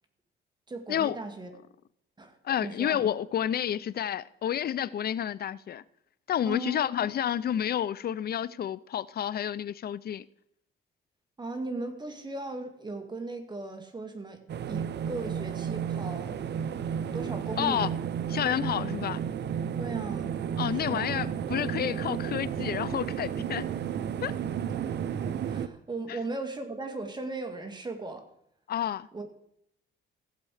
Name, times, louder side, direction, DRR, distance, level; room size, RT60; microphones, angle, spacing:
voice 1, 0.7-1.5 2.2-3.0 6.5-6.8 11.4-14.4 14.7-16.4 17.1-17.9 19.8-20.3 20.7-21.1 25.2-28.3 29.1-29.3, right 2 dB, 20° right, 2.1 m, -37 dB
voice 2, 2.4-5.8 6.3-10.2 17.6-17.9 18.3-19.2 20.6-23.7 24.2-24.3 28.7-29.1, left 10 dB, 50° left, 0.6 m, -30 dB
sound 1, 14.5-25.7, right 8 dB, 60° right, 0.7 m, -32 dB
16.0 x 7.6 x 4.9 m
cardioid pair, 90°, 20 cm